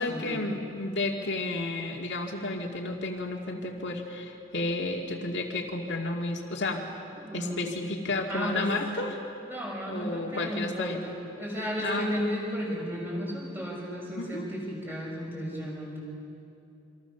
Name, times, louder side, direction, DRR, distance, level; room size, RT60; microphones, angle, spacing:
voice 1, 0.0-6.8 7.3-9.2 9.9-11.0 11.8-12.1 14.2-14.5, left 2 dB, 60° left, 1 dB, 2.2 m, -32 dB
voice 2, 7.2-7.7 8.3-8.7 9.4-16.0, equal, 10° right, -3 dB, 6.9 m, -34 dB
27.5 x 26.0 x 7.0 m, 2.8 s
head